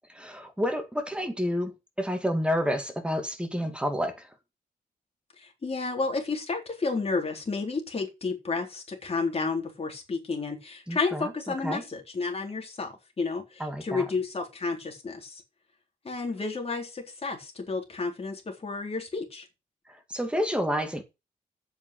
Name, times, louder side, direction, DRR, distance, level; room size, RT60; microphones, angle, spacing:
voice 1, 0.1-4.3 10.9-11.8 13.6-14.0 20.1-21.0, equal, 5° right, 2.4 m, -29 dB
voice 2, 5.4-15.4 16.0-19.5, left 4 dB, 40° left, 3.9 m, -31 dB
8.3 x 7.0 x 7.8 m
cardioid pair, 95°, 15 cm